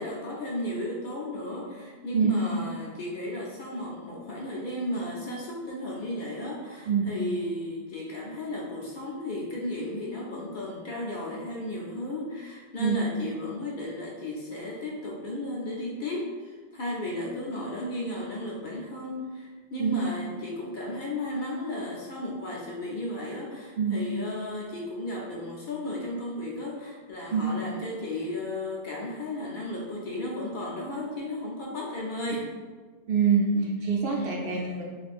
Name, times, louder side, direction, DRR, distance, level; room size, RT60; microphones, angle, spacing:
voice 1, 0.0-32.5 33.5-33.6 34.2-34.8, left 1 dB, 60° left, -4 dB, 0.6 m, -34 dB
voice 2, 33.1-34.8, right 6 dB, 65° right, -2 dB, 0.7 m, -25 dB
2.5 x 2.4 x 3.4 m, 1.5 s
omnidirectional pair, 1.1 m